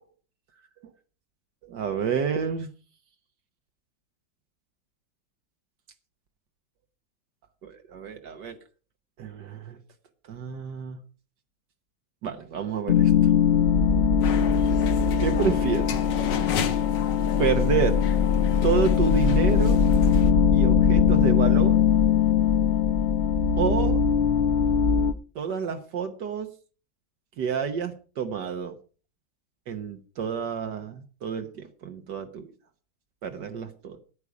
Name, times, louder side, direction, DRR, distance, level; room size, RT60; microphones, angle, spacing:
voice 1, 1.6-2.7 7.6-8.6 9.2-9.8 10.3-11.0 12.2-13.3 13.8-13.9 15.2-16.0 17.4-18.0 18.6-19.8 20.5-21.8 23.6-24.1 25.3-26.5 27.4-28.7 29.7-32.4 33.2-34.0, right 6 dB, 75° right, 6 dB, 1.7 m, -29 dB
sound 1, 12.9-25.1, left 7 dB, 60° left, 0.6 m, -21 dB
sound 2, 14.2-20.3, left 8 dB, 80° left, 1.7 m, -34 dB
13.5 x 9.8 x 4.9 m, 0.38 s
omnidirectional pair, 1.9 m